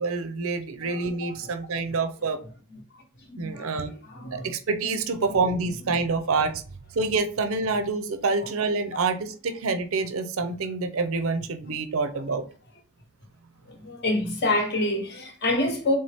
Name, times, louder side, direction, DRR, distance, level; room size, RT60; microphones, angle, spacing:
voice 1, 0.0-2.4 3.4-3.9 4.3-6.6 6.9-12.4, right 4 dB, 65° right, 0.5 m, -27 dB
voice 2, 0.8-1.4 2.7-2.8 3.3-4.5 8.4-8.5 8.9-9.1 13.7-16.0, left 2 dB, 50° left, 1.0 m, -28 dB
4.2 x 3.3 x 3.4 m
head